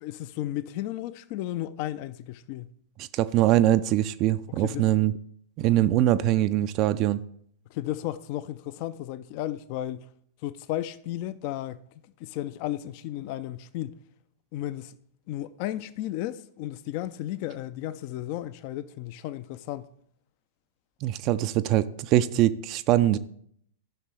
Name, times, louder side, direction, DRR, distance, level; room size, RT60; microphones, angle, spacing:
voice 1, 0.0-2.7 4.6-4.8 7.7-10.1 10.4-11.8 12.2-14.0 14.5-15.0 15.3-19.9, left 13 dB, 40° left, 0.3 m, -34 dB
voice 2, 3.0-5.1 5.6-7.2 21.0-23.2, right 13 dB, 35° right, 0.3 m, -23 dB
14.5 x 5.8 x 3.2 m
figure-of-eight pair, 100°, 0 cm